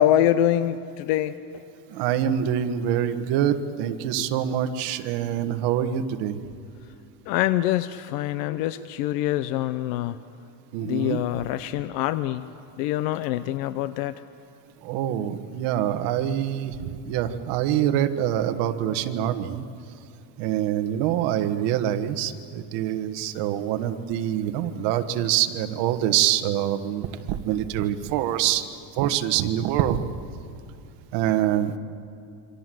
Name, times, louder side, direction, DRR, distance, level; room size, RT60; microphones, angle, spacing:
voice 1, 0.0-1.6 4.2-4.3 7.3-10.2 10.8-12.5 12.8-14.1, left 12 dB, 80° left, 13 dB, 0.9 m, -25 dB
voice 2, 1.9-6.4 10.7-11.2 14.8-19.6 20.4-28.7 29.0-30.0 31.1-31.8, right 11 dB, 55° right, 8 dB, 1.6 m, -25 dB
27.0 x 25.0 x 7.8 m, 2.5 s
cardioid pair, 165°, 47 cm